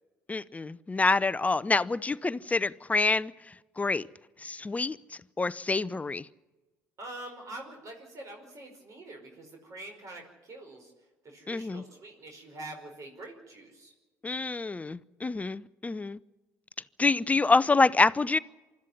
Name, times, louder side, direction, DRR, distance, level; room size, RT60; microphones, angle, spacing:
voice 1, 0.3-3.3 3.8-4.1 4.4-5.0 5.4-6.3 11.5-11.8 14.2-16.2 17.0-18.4, left 3 dB, 20° left, 0.6 m, -26 dB
voice 2, 7.0-10.9 11.2-13.9, right 2 dB, 45° right, 5.1 m, -45 dB
25.0 x 13.0 x 9.8 m
hypercardioid pair, 65°, 7 cm